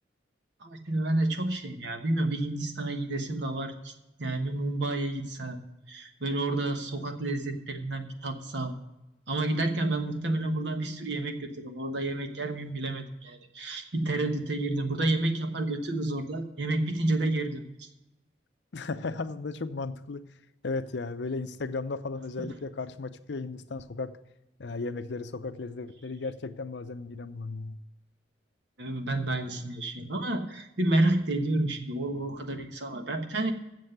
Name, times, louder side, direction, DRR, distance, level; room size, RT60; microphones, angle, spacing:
voice 1, 0.6-3.9 4.2-5.6 5.9-8.7 9.3-17.9 22.4-22.5 28.8-33.5, right 2 dB, 65° right, 6 dB, 1.2 m, -30 dB
voice 2, 18.7-20.2 20.6-24.1 24.6-27.8, left 3 dB, 65° left, 12 dB, 0.6 m, -35 dB
7.7 x 7.4 x 7.8 m, 0.94 s
head